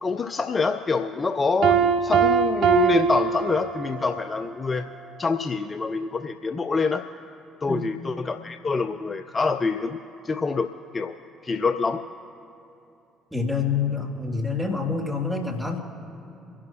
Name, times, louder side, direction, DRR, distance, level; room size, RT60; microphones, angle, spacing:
voice 1, 0.0-4.9 5.2-7.1 7.6-10.0 10.2-11.2 11.4-12.0, left 4 dB, 35° left, 9 dB, 0.5 m, -26 dB
Piano, 1.6-4.2, right 7 dB, 60° right, 0.9 m, -22 dB
voice 2, 13.3-15.8, left 4 dB, 5° right, -1 dB, 2.6 m, -27 dB
24.0 x 11.5 x 3.0 m, 2.8 s
hypercardioid pair, 50°, 0 cm